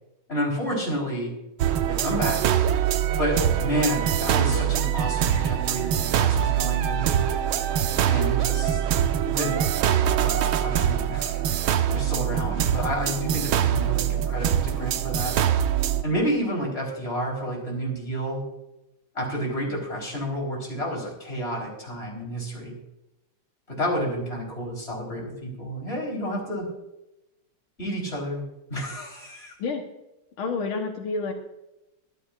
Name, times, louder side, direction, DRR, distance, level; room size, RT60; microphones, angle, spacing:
voice 1, 0.3-1.4 1.9-2.5 3.2-7.1 8.0-8.8 9.3-15.4 16.0-18.5 19.1-22.8 23.7-26.7 27.8-28.4 28.7-29.5, equal, 30° left, -1 dB, 4.4 m, -30 dB
sound 1, 1.6-16.0, right 10 dB, 80° right, 1.6 m, -24 dB
voice 2, 30.4-31.3, left 4 dB, 85° left, 3 dB, 2.1 m, -29 dB
23.5 x 10.0 x 2.5 m, 0.93 s
omnidirectional pair, 2.3 m